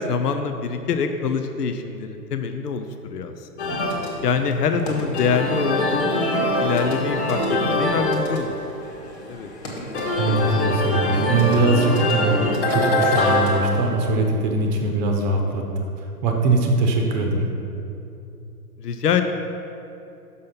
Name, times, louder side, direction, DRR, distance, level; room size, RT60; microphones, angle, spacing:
voice 1, 0.0-3.5 4.2-7.4 7.7-8.6 9.3-9.5 18.8-19.2, left 6 dB, 75° left, 7 dB, 0.6 m, -25 dB
sound 1, 3.6-13.9, left 1 dB, 45° left, 1.5 m, -24 dB
voice 2, 10.2-12.4 12.7-15.6 16.0-17.4, right 3 dB, 30° right, 2 dB, 0.9 m, -21 dB
6.3 x 5.6 x 5.5 m, 2.7 s
figure-of-eight pair, 115°, 48 cm